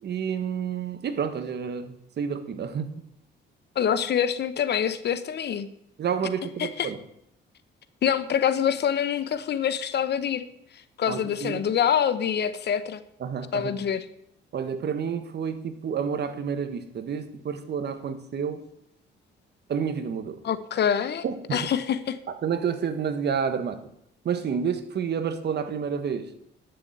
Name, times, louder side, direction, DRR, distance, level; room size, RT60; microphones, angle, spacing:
voice 1, 0.0-3.0 6.0-7.0 11.1-11.6 13.2-13.7 14.5-18.6 19.7-20.4 21.2-21.7 22.3-23.9 24.2-26.3, right 7 dB, 55° right, 10 dB, 1.4 m, -29 dB
voice 2, 3.7-5.7 6.6-6.9 8.0-10.5 11.0-13.0 13.5-14.0 20.4-21.2 21.5-22.2, left 8 dB, 60° left, 14 dB, 0.9 m, -25 dB
11.5 x 6.9 x 8.0 m, 0.76 s
cardioid pair, 90°, 20 cm